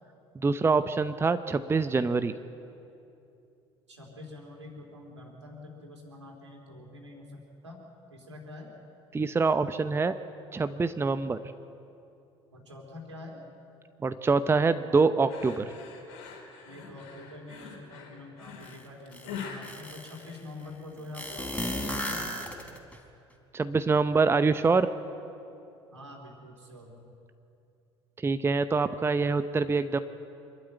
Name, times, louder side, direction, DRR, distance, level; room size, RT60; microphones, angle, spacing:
voice 1, 0.3-2.3 9.1-10.1 10.5-11.4 14.0-15.6 23.5-24.9 28.2-30.0, right 4 dB, 15° right, 11 dB, 0.8 m, -25 dB
voice 2, 3.9-7.8 8.1-8.7 12.5-13.4 16.6-22.0 25.9-27.1, left 2 dB, 80° right, 0 dB, 3.6 m, -46 dB
sound 1, 15.3-20.8, left 6 dB, 65° left, 3.8 m, -44 dB
sound 2, 18.6-18.7 19.1-20.3 21.1-23.0, left 1 dB, 10° left, 3.8 m, -34 dB
25.5 x 12.5 x 9.3 m, 2.6 s
figure-of-eight pair, 60°, 15 cm